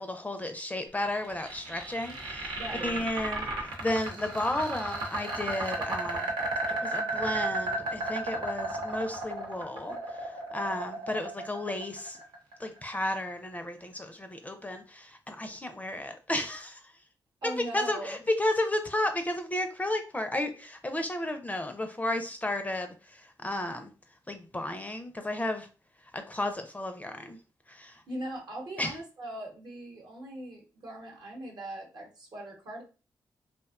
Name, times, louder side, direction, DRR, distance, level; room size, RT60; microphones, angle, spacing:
voice 1, 0.0-6.3 6.7-10.0 10.5-12.2 12.6-16.8 17.4-23.9 24.3-25.7 26.1-27.4 27.7-28.0 28.8-28.9, left 1 dB, 20° left, 7 dB, 0.4 m, -33 dB
sound 1, 1.0-13.1, right 2 dB, 90° right, 0.6 m, -34 dB
voice 2, 2.5-3.1 17.4-18.2 27.9-32.8, right 1 dB, 65° right, 0 dB, 0.9 m, -40 dB
2.5 x 2.1 x 2.4 m, 0.33 s
cardioid pair, 55°, 8 cm